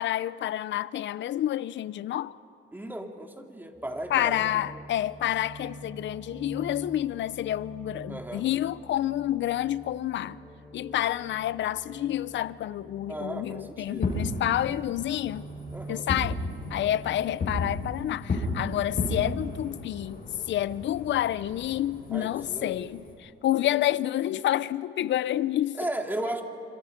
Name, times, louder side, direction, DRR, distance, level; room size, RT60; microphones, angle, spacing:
voice 1, 0.0-2.4 4.1-10.4 10.7-15.5 15.9-16.4 16.7-20.2 20.5-25.8, left 12 dB, 70° left, 0.7 m, -29 dB
voice 2, 2.7-4.5 8.1-8.5 13.1-14.0 15.7-16.1 22.1-22.9 25.8-26.4, right 1 dB, 10° right, 2.5 m, -35 dB
sound 1, 3.7-18.4, right 2 dB, 10° left, 3.6 m, -46 dB
Fireworks, 13.8-23.1, left 2 dB, 45° left, 7.7 m, -34 dB
27.5 x 26.0 x 5.2 m
cardioid pair, 90°, 20 cm